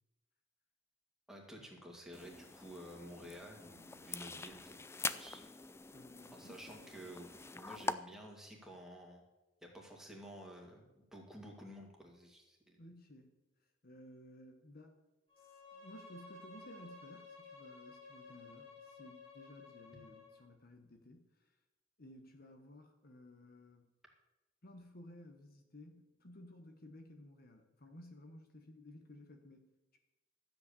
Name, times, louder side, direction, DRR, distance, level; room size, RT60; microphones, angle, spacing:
voice 1, 1.3-4.8 5.2-5.4 6.3-9.2 9.6-12.8, equal, ahead, -1 dB, 2.3 m, -52 dB
sound 1, 2.1-7.9, left 4 dB, 15° left, 0.4 m, -44 dB
voice 2, 5.9-6.8 12.8-13.3 13.8-15.0 15.4-21.6 22.0-23.9 24.6-30.0, left 1 dB, 50° left, 5 dB, 1.2 m, -56 dB
Bowed string instrument, 15.3-20.4, left 3 dB, 30° left, 3.7 m, -55 dB
12.5 x 7.9 x 7.0 m, 1.0 s
head